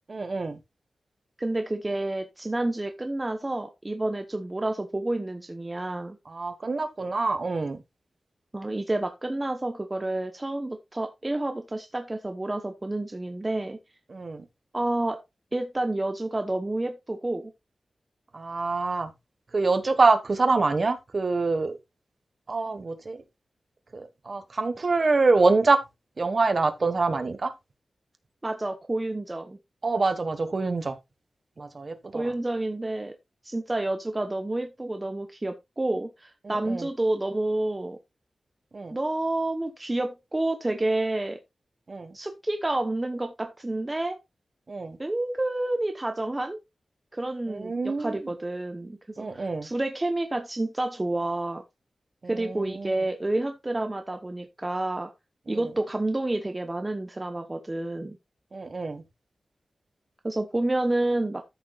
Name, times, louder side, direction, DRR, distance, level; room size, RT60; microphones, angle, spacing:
voice 1, 0.1-0.6 6.3-7.8 14.1-14.4 18.3-19.1 19.5-21.7 22.5-23.2 23.9-25.8 26.2-27.5 29.8-31.0 31.6-32.2 36.4-36.9 38.7-39.0 41.9-42.1 44.7-45.0 47.5-48.2 49.2-49.7 52.4-52.9 55.5-55.6 58.5-59.0, right 3 dB, 40° right, 1.4 m, -25 dB
voice 2, 1.4-6.2 8.5-13.8 14.7-15.2 15.5-17.5 28.4-29.6 32.1-33.1 33.4-38.0 38.9-41.4 42.1-44.2 45.0-46.6 47.1-51.6 52.3-55.1 55.5-58.2 60.2-61.4, right 2 dB, 20° right, 0.9 m, -29 dB
13.0 x 6.8 x 2.4 m
wide cardioid pair, 145°, 0 cm